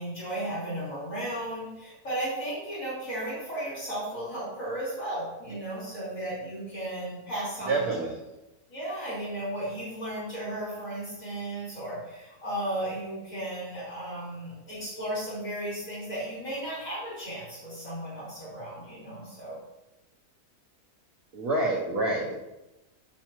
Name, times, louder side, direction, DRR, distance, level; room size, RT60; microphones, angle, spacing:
voice 1, 0.0-7.9 8.7-19.6, right 1 dB, 60° left, -8 dB, 3.3 m, -35 dB
voice 2, 7.7-8.2 21.3-22.4, right 2 dB, 70° right, -3 dB, 1.4 m, -27 dB
9.3 x 6.9 x 3.0 m, 1.0 s
omnidirectional pair, 1.6 m